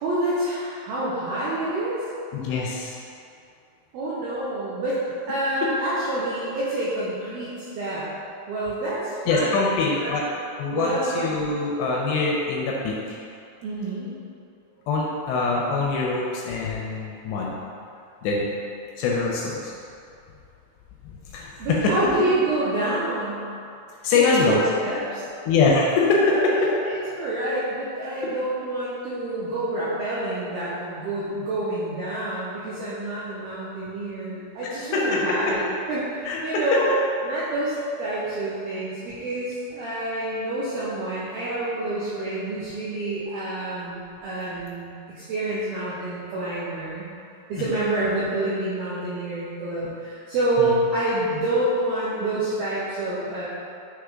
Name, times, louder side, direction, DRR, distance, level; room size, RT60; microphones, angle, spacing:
voice 1, 0.0-2.0 3.9-5.0 5.3-8.1 8.5-10.1 10.7-11.2 13.6-14.1 21.6-23.5 24.1-25.3 26.2-36.9 37.2-47.1 47.5-53.5, right 1 dB, 90° right, -9 dB, 2.1 m, -28 dB
voice 2, 2.3-3.0 9.3-10.3 10.6-13.2 14.9-17.6 18.2-18.5 19.0-19.7 21.0-21.9 24.0-24.6 25.4-26.5 34.9-35.5 36.3-36.6 47.6-47.8 50.6-50.8, left 3 dB, 85° left, -3 dB, 2.5 m, -23 dB
9.5 x 3.3 x 3.6 m, 2.5 s
omnidirectional pair, 5.4 m